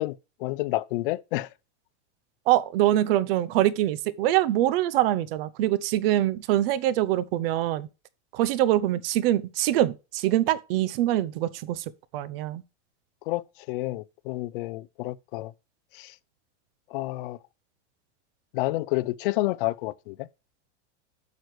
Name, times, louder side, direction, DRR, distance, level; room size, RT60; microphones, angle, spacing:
voice 1, 0.0-1.5 13.3-15.5 15.9-16.2 16.9-17.4 18.5-20.3, left 19 dB, 50° left, 0.5 m, -30 dB
voice 2, 2.5-7.9 8.3-11.8 12.1-12.6, right 13 dB, 50° right, 0.8 m, -24 dB
10.5 x 6.4 x 3.2 m
supercardioid pair, 160°, 36 cm